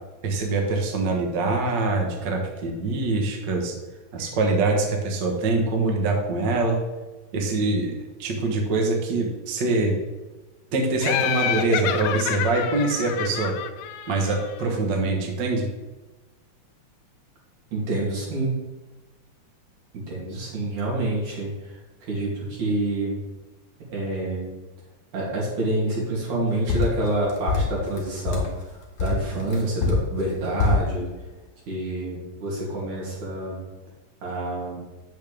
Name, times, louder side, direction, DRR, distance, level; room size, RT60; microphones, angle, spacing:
voice 1, 0.2-3.7 4.1-6.8 7.3-7.9 8.2-10.0 10.7-13.5 14.1-15.7, right 3 dB, 50° right, 1 dB, 1.4 m, -24 dB
Laughter, 11.0-14.6, left 10 dB, 80° left, 1.9 m, -28 dB
voice 2, 17.7-18.5 19.9-23.2 23.9-24.5 25.1-31.1 31.7-33.6 34.2-34.8, right 2 dB, 75° right, -5 dB, 3.9 m, -27 dB
sound 1, 26.7-28.6 29.0-30.9, left 3 dB, 45° left, 1.5 m, -24 dB
8.2 x 7.1 x 3.3 m, 1.2 s
omnidirectional pair, 3.4 m